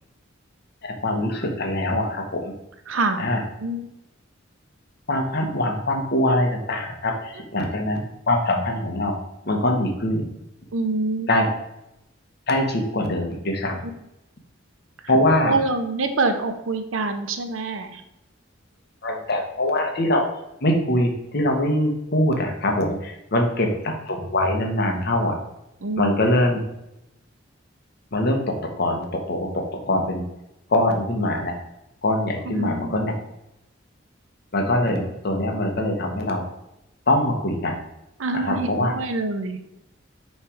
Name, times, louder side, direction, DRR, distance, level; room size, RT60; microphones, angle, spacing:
voice 1, 0.8-2.5 3.2-3.4 5.1-9.1 9.4-10.3 11.3-11.5 12.5-13.8 15.1-15.5 19.0-20.2 20.6-25.4 26.0-26.6 28.1-30.2 30.7-31.5 32.0-33.1 34.5-36.4 37.1-37.8 38.4-38.9, left 1 dB, 55° left, 3 dB, 1.1 m, -23 dB
voice 2, 2.9-3.3 3.6-3.9 7.4-7.5 10.7-11.3 13.8-13.9 15.4-18.0 25.8-26.2 32.4-33.1 38.2-39.6, right 3 dB, 85° right, 7 dB, 0.7 m, -26 dB
5.7 x 3.3 x 4.9 m, 0.86 s
head